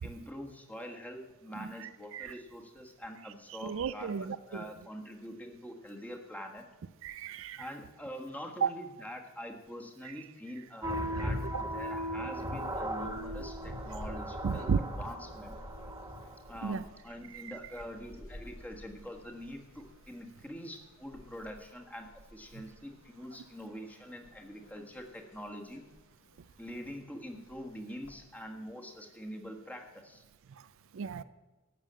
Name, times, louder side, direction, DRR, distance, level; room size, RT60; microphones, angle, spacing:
voice 1, 0.0-6.6 7.6-15.6 16.5-25.9 26.6-30.2, equal, 5° left, 2 dB, 1.5 m, -45 dB
voice 2, 3.6-4.4 7.0-7.6 8.6-8.7 11.5-11.6 14.4-14.8 16.6-16.8 30.9-31.2, right 6 dB, 65° right, 14 dB, 0.4 m, -32 dB
sound 1, 10.8-16.8, equal, 15° right, 1.6 m, -37 dB
sound 2, 12.6-28.1, left 1 dB, 65° left, 1.3 m, -53 dB
12.5 x 7.4 x 7.5 m, 1.2 s
head